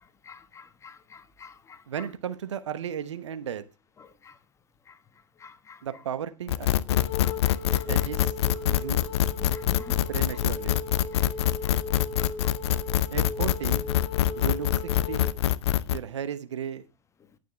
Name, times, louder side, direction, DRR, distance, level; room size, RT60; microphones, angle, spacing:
voice 1, 0.2-1.8 4.2-4.3 4.9-5.0 5.4-5.8 7.2-7.9 9.5-10.1 11.1-12.5, left 5 dB, 15° left, 1.1 m, -48 dB
voice 2, 1.9-3.6 5.8-6.7 7.8-8.3 8.7-9.1 10.1-10.8 13.1-13.9 14.4-15.2 15.9-16.9, right 8 dB, 65° right, 1.1 m, -34 dB
sound 1, 6.5-16.0, left 13 dB, 55° left, 0.6 m, -25 dB
Wind instrument woodwind instrument, 6.9-15.3, left 2 dB, 35° left, 3.0 m, -38 dB
17.5 x 6.8 x 3.3 m
figure-of-eight pair, 95°, 16 cm